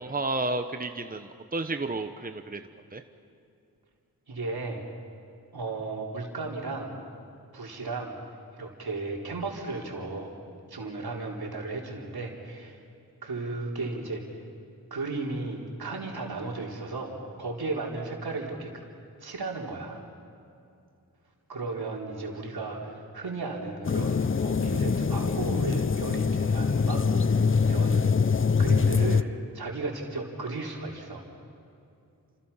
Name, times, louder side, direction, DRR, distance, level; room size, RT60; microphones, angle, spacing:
voice 1, 0.0-2.6 2.9-3.0, right 2 dB, 25° right, 7 dB, 1.1 m, -31 dB
voice 2, 4.3-4.8 5.5-7.0 7.5-8.2 8.5-10.3 10.7-12.8 13.2-14.4 14.9-18.7 19.2-20.0 21.5-28.0 28.6-31.3, right 3 dB, 75° right, -1 dB, 4.2 m, -35 dB
sound 1, 23.8-29.2, left 5 dB, 35° left, 0.7 m, -24 dB
29.5 x 27.5 x 5.8 m, 2.5 s
wide cardioid pair, 65°, 38 cm